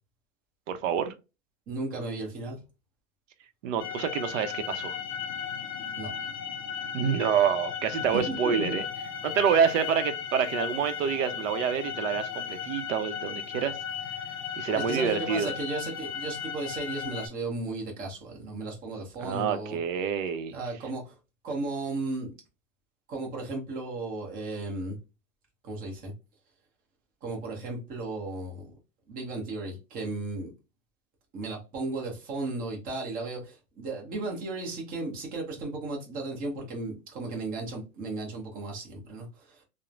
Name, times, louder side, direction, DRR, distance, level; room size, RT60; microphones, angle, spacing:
voice 1, 0.7-1.1 3.6-5.0 6.9-8.9 9.2-13.8 14.6-15.5 19.2-20.6, right 7 dB, 70° right, 0.7 m, -27 dB
voice 2, 1.7-2.6 6.0-6.1 8.1-8.8 14.7-19.8 20.5-21.2 21.4-22.3 23.1-25.0 25.6-26.1 27.2-28.8 29.1-30.5 31.3-39.6, right 2 dB, 20° right, 0.8 m, -35 dB
sound 1, 3.8-17.3, left 8 dB, 40° left, 0.5 m, -36 dB
3.0 x 2.1 x 2.4 m
supercardioid pair, 155°, 39 cm